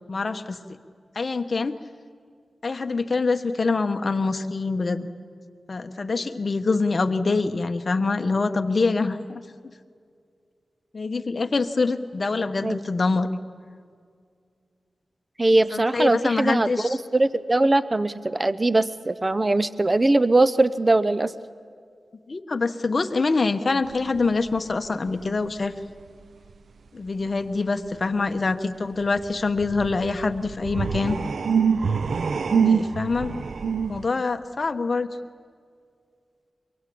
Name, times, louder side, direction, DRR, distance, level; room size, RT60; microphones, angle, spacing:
voice 1, 0.1-0.6 1.1-1.8 2.6-5.1 5.7-9.4 10.9-13.3 15.7-17.0 22.3-25.7 26.9-31.2 32.5-33.5 33.9-35.1, left 3 dB, 50° left, 8 dB, 1.2 m, -25 dB
voice 2, 15.4-21.3, right 2 dB, 30° right, 15 dB, 0.7 m, -21 dB
sound 1, 23.9-24.7 25.1-25.2 29.0-34.1, right 6 dB, 80° right, 0.6 m, -25 dB
23.5 x 23.0 x 8.6 m, 2.2 s
wide cardioid pair, 70°, 0 cm